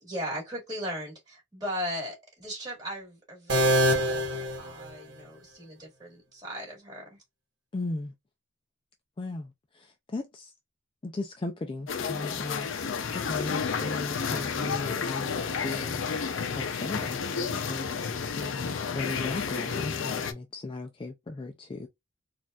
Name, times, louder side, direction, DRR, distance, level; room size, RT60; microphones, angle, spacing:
voice 1, 0.0-4.3 4.6-7.2, equal, 20° right, 2.2 m, -37 dB
sound 1, 3.5-5.4, equal, 60° right, 1.2 m, -26 dB
voice 2, 7.7-8.1 9.2-10.5 11.0-16.0 16.7-18.1 18.3-21.9, left 2 dB, 25° left, 0.3 m, -37 dB
sound 2, 11.9-20.3, left 6 dB, 80° left, 0.5 m, -31 dB
4.1 x 2.4 x 2.3 m
head